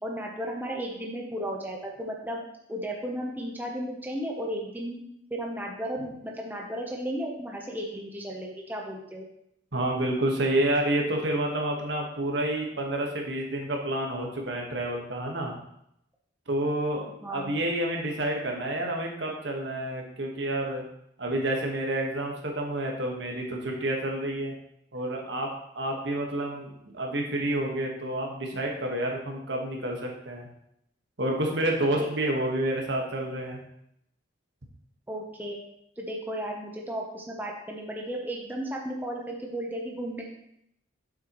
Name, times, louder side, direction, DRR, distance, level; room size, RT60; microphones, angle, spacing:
voice 1, 0.0-2.4 2.7-5.0 5.3-9.2 17.2-17.5 32.0-32.1 35.1-35.6 36.0-40.2, equal, 10° right, -1 dB, 0.8 m, -34 dB
voice 2, 9.7-15.6 16.5-17.0 17.3-20.9 21.2-24.5 24.9-30.5 31.2-33.6, right 1 dB, 70° right, 1 dB, 1.5 m, -29 dB
7.7 x 6.6 x 3.1 m, 0.76 s
head